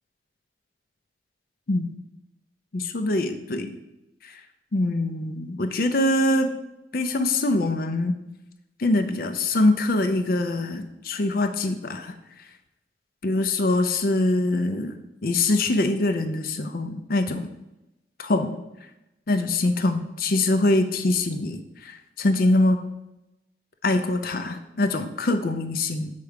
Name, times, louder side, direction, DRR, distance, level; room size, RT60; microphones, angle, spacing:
voice 1, 2.7-3.8 4.2-4.4 4.7-6.5 6.9-8.1 8.8-12.2 13.2-17.5 18.2-18.6 19.3-22.8 23.8-26.1, left 2 dB, 55° left, 7 dB, 0.5 m, -24 dB
6.7 x 4.7 x 5.0 m, 0.94 s
head